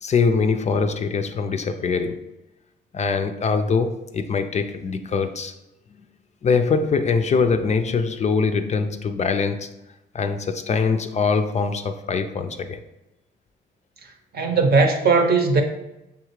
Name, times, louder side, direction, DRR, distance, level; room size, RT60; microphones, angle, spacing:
voice 1, 0.0-2.3 2.9-5.5 6.4-9.7 10.1-12.8, left 5 dB, 35° left, 0.4 m, -23 dB
voice 2, 14.3-15.6, right 4 dB, 55° right, 0.8 m, -18 dB
6.8 x 2.4 x 3.1 m
cardioid pair, 90°, 20 cm